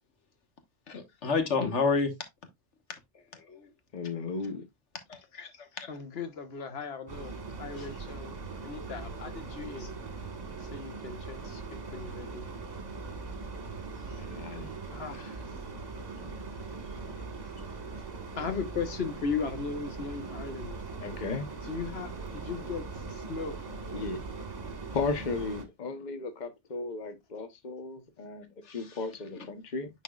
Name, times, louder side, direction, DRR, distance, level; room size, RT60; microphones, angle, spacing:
voice 1, 0.9-2.1 3.5-3.7 5.1-5.5 5.8-5.9 28.7-28.8, left 4 dB, 85° left, 1.6 m, -29 dB
voice 2, 3.9-4.6 14.2-14.7 21.0-21.5 23.9-24.2 24.9-29.9, left 3 dB, 40° left, 1.1 m, -35 dB
voice 3, 5.9-10.0 10.6-12.5 14.9-15.7 18.3-20.8 21.6-23.6, left 5 dB, 60° left, 1.3 m, -37 dB
sound 1, 7.1-25.7, right 4 dB, 35° right, 1.4 m, -40 dB
9.9 x 4.2 x 2.3 m
omnidirectional pair, 1.2 m